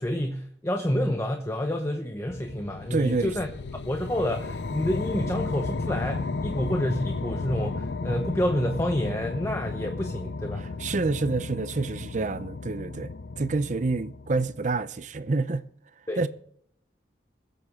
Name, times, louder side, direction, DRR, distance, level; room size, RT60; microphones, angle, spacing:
voice 1, 0.0-10.6 16.1-16.3, equal, 15° left, 0.9 m, -29 dB
sound 1, 2.3-14.8, left 3 dB, 80° left, 0.6 m, -34 dB
voice 2, 2.9-3.3 10.6-15.6 16.2-16.3, right 3 dB, 45° right, 0.6 m, -28 dB
22.0 x 7.9 x 3.6 m
head